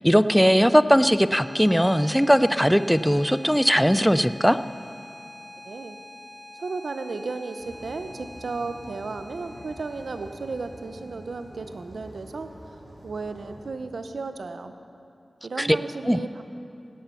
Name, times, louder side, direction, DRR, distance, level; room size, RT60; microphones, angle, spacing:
voice 1, 0.0-4.6 15.6-15.8 16.0-16.2, equal, ahead, 13 dB, 0.3 m, -19 dB
sound 1, 1.0-12.1, left 2 dB, 20° left, 4.0 m, -46 dB
voice 2, 5.6-6.0 6.5-12.5 13.0-14.7 15.4-16.4, right 3 dB, 90° right, 8 dB, 0.8 m, -34 dB
sound 2, 7.6-13.7, equal, 55° right, 2.9 m, -46 dB
17.5 x 11.5 x 5.7 m, 2.8 s
wide cardioid pair, 90°, 0 cm